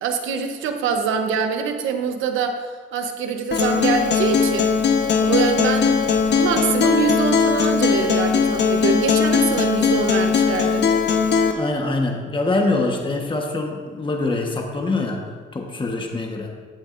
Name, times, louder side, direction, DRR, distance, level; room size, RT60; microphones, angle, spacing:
voice 1, 0.0-4.7 5.2-6.0 6.3-10.9, right 6 dB, 85° right, 6 dB, 1.0 m, -24 dB
Acoustic guitar, 3.5-11.5, left 6 dB, 60° left, 1.1 m, -19 dB
voice 2, 11.5-15.2 15.5-16.5, left 2 dB, 25° left, 1 dB, 1.3 m, -24 dB
14.5 x 8.4 x 2.6 m, 1.5 s
cardioid pair, 90°, 20 cm